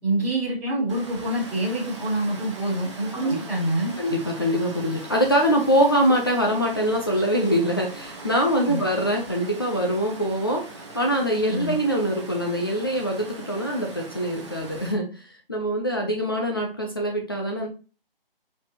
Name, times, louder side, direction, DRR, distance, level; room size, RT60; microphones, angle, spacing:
voice 1, 0.0-3.9 8.7-8.8 11.4-11.8, right 1 dB, 5° right, -11 dB, 1.6 m, -26 dB
Water, 0.9-14.9, right 2 dB, 30° right, 0.9 m, -41 dB
voice 2, 4.0-15.1 15.5-17.7, equal, 25° left, 0 dB, 0.5 m, -23 dB
4.6 x 4.0 x 2.8 m, 0.35 s
figure-of-eight pair, 160°, 29 cm